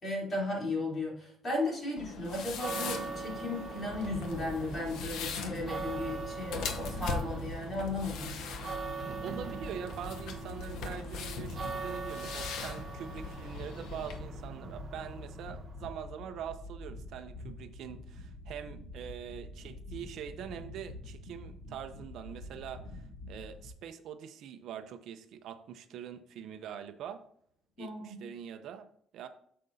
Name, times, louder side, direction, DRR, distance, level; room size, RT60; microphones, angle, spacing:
voice 1, 0.0-8.3 27.8-28.2, left 2 dB, 25° left, -4 dB, 3.2 m, -35 dB
sound 1, 2.0-14.2, left 6 dB, 85° left, 0.8 m, -42 dB
sound 2, 2.4-15.9, right 5 dB, 30° right, 0.8 m, -42 dB
sound 3, 3.8-23.7, left 2 dB, 50° left, 2.7 m, -45 dB
voice 2, 9.1-27.2 27.8-28.8 29.1-29.3, right 8 dB, 65° right, 9 dB, 0.6 m, -43 dB
8.6 x 6.6 x 2.7 m, 0.66 s
cardioid pair, 170°, 0 cm